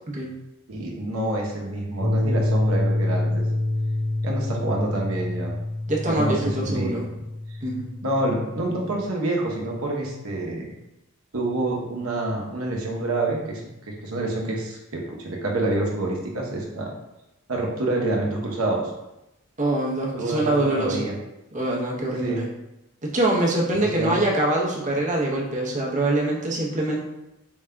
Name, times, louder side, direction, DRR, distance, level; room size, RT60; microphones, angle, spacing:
voice 1, 0.7-3.4 4.2-5.5 6.1-7.2 8.0-10.7 11.3-16.9 17.5-18.9 20.1-21.1 22.2-22.5 23.8-24.2, right 2 dB, 85° right, 0 dB, 0.9 m, -27 dB
sound 1, 2.0-9.1, left 2 dB, 25° left, 0.6 m, -27 dB
voice 2, 5.9-7.1 7.6-7.9 19.6-21.1 21.5-22.5 23.0-27.0, right 1 dB, 35° right, -2 dB, 0.8 m, -24 dB
4.8 x 3.6 x 2.2 m, 0.93 s
head